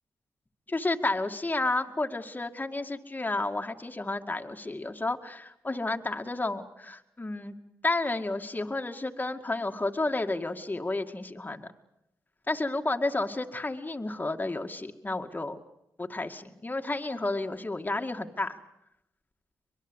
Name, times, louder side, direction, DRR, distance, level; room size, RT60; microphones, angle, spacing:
voice 1, 0.7-7.5 7.8-11.7 12.5-15.6 16.0-18.6, left 2 dB, 25° left, 5 dB, 2.2 m, -31 dB
23.5 x 22.0 x 8.2 m, 0.84 s
supercardioid pair, 45°, 7 cm